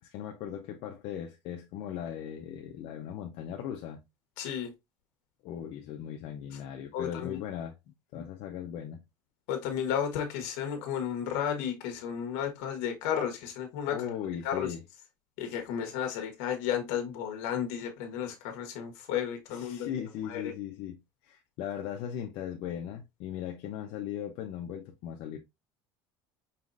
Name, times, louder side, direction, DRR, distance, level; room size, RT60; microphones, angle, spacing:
voice 1, 0.0-4.0 5.4-7.7 8.1-9.0 13.9-14.8 19.5-25.4, left 9 dB, 65° left, 0.7 m, -38 dB
voice 2, 4.4-4.7 6.9-7.4 8.1-8.2 9.5-14.0 14.4-14.7 15.4-19.9 20.2-20.5, left 8 dB, 85° left, 1.2 m, -33 dB
5.6 x 3.1 x 2.6 m
cardioid pair, 145°, 10 cm